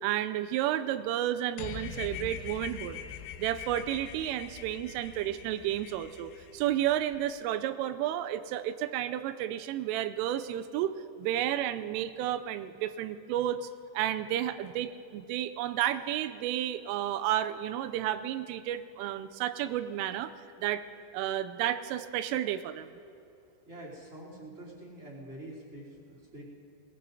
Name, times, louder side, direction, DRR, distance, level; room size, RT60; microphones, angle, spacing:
voice 1, 0.0-3.0 3.4-10.9 11.2-13.7 13.9-20.3 20.6-20.8 21.1-22.9, right 12 dB, 85° right, 12 dB, 3.1 m, -31 dB
sound 1, 1.6-7.2, left 8 dB, 80° left, 2.9 m, -43 dB
voice 2, 23.6-26.4, right 1 dB, 20° right, -4 dB, 2.8 m, -46 dB
22.0 x 19.5 x 2.7 m, 2.6 s
omnidirectional pair, 5.7 m